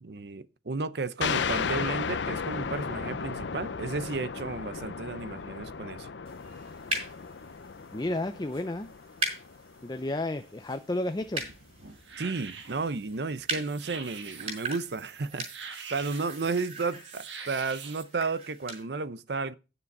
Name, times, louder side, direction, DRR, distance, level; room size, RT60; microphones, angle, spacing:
voice 1, 0.0-6.1 12.2-19.5, right 4 dB, 65° right, 0.6 m, -33 dB
sound 1, 1.2-10.4, left 5 dB, 85° left, 0.6 m, -35 dB
sound 2, 6.3-18.8, right 2 dB, 35° right, 4.4 m, -40 dB
voice 2, 7.9-8.9 9.8-11.4, left 1 dB, 20° left, 0.5 m, -32 dB
sound 3, 11.2-18.0, right 5 dB, 90° right, 1.5 m, -45 dB
10.0 x 6.8 x 5.3 m
head